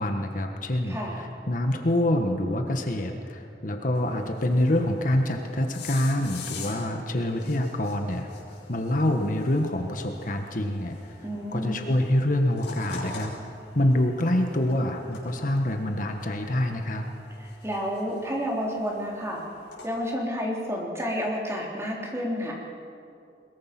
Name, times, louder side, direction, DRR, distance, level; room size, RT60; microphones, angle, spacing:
voice 1, 0.0-8.3 8.7-11.2 11.5-17.0, left 1 dB, 50° left, 4 dB, 1.4 m, -26 dB
voice 2, 0.9-1.2 11.2-11.8 17.4-19.4 19.8-22.6, equal, 15° right, -2 dB, 3.5 m, -30 dB
sound 1, 3.9-19.9, left 4 dB, 85° left, 6.0 m, -46 dB
22.0 x 22.0 x 6.0 m, 2.6 s
head